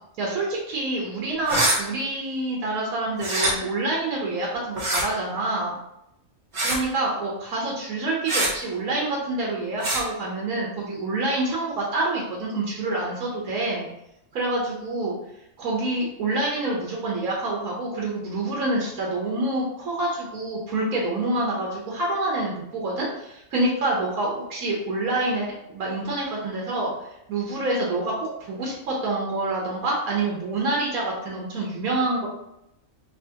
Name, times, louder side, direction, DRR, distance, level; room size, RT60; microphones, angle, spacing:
voice 1, 0.2-5.7 6.6-13.9 14.3-15.2 15.6-32.3, right 2 dB, 85° right, -3 dB, 1.3 m, -27 dB
sound 1, 1.4-1.8 3.2-3.5 4.7-5.0 6.5-6.8 8.3-8.5 9.8-10.0, right 1 dB, 40° right, 0.8 m, -23 dB
4.6 x 2.8 x 2.8 m, 0.82 s
omnidirectional pair, 1.4 m